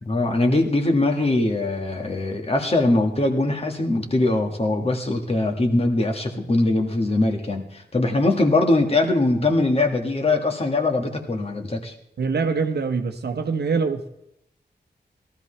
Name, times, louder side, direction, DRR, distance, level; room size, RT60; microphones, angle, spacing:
voice 1, 0.0-11.9, left 2 dB, 35° left, 3 dB, 1.6 m, -22 dB
voice 2, 12.2-14.1, right 5 dB, 70° right, 7 dB, 1.0 m, -24 dB
17.5 x 13.0 x 3.3 m, 0.80 s
wide cardioid pair, 100°, 17 cm